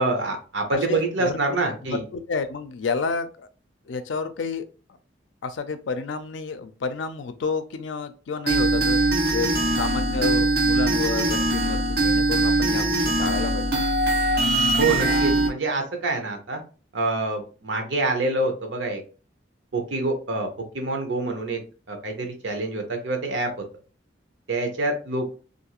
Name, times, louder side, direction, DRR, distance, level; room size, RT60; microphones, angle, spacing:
voice 1, 0.0-2.0 14.8-16.6 16.9-19.0 19.7-20.5 20.7-21.6 21.9-23.5 24.5-25.3, right 2 dB, 85° right, 4 dB, 0.8 m, -26 dB
voice 2, 0.7-3.5 3.9-4.7 5.4-9.0 9.3-13.7, left 4 dB, 85° left, 10 dB, 0.4 m, -30 dB
sound 1, 8.5-15.5, right 2 dB, 55° right, 0.8 m, -22 dB
2.5 x 2.4 x 2.9 m, 0.36 s
head